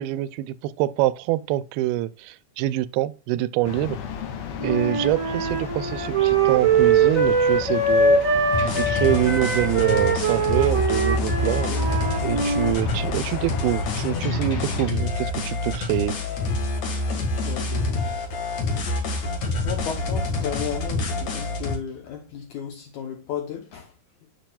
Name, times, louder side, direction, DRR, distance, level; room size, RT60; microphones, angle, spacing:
voice 1, 0.0-4.0 4.6-8.2 8.7-11.7 12.2-16.2, right 15 dB, 85° right, 2.5 m, -25 dB
sound 1, 3.6-14.9, left 7 dB, 90° left, 3.3 m, -34 dB
Wind instrument woodwind instrument, 4.6-12.7, right 4 dB, 60° right, 0.8 m, -22 dB
sound 2, 8.5-21.8, left 2 dB, 55° left, 2.6 m, -27 dB
voice 2, 11.4-12.0 12.6-12.7 17.4-18.2 19.6-23.9, left 8 dB, 70° left, 1.9 m, -34 dB
8.9 x 7.3 x 2.3 m
omnidirectional pair, 4.4 m